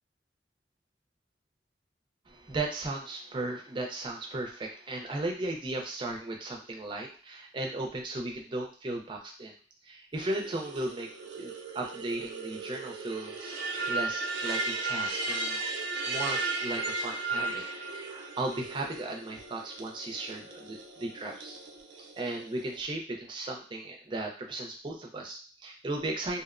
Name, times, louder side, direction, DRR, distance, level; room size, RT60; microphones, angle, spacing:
voice 1, 2.3-9.5 9.8-11.1 11.3-13.6 13.9-15.6 16.1-17.6 17.9-21.6 22.2-26.4, right 2 dB, 25° right, 1 dB, 0.4 m, -36 dB
sound 1, 10.1-22.8, right 3 dB, 85° right, 0.4 m, -36 dB
2.7 x 2.0 x 2.4 m, 0.39 s
head